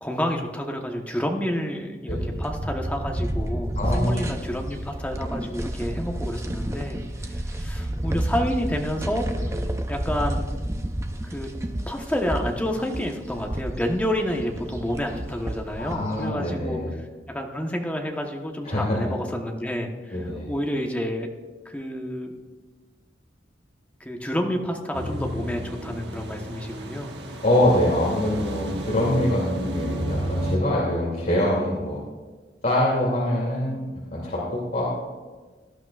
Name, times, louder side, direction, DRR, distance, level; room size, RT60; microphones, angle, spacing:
voice 1, 0.0-7.0 7.2-9.3 9.9-10.5 11.2-11.5 11.9-21.3 21.6-22.3 24.0-27.1, equal, 10° left, 2 dB, 1.1 m, -29 dB
sound 1, 2.1-16.3, right 1 dB, 15° right, 0.6 m, -30 dB
voice 2, 3.8-4.4 15.8-17.0 18.6-19.0 20.1-20.5 27.4-32.0 32.6-33.8 34.1-34.9, left 1 dB, 50° left, -6 dB, 2.6 m, -24 dB
sound 2, 24.9-30.6, right 1 dB, 80° right, 1.4 m, -32 dB
18.0 x 11.5 x 2.4 m, 1.3 s
head